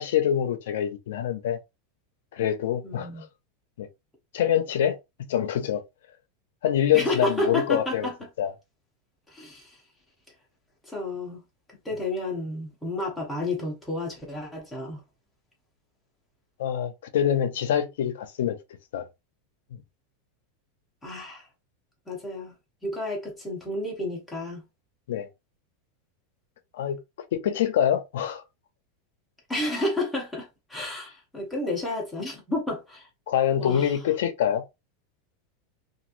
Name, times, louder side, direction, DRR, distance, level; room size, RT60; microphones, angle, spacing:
voice 1, 0.0-1.6 2.3-3.3 3.8-3.9 4.3-5.0 5.3-5.8 6.6-8.1 8.4-8.5 16.6-18.6 18.9-19.1 19.7-19.8 25.1-25.3 26.7-27.0 27.3-28.4 33.3-34.6, left 10 dB, 75° left, 0.6 m, -25 dB
voice 2, 2.8-3.3 6.9-8.3 9.3-9.8 10.8-11.4 11.8-15.0 21.0-21.5 22.1-22.5 22.8-24.6 29.5-33.1 33.6-33.9, left 1 dB, 5° left, 0.8 m, -31 dB
3.0 x 2.5 x 2.5 m
supercardioid pair, 175°, 0 cm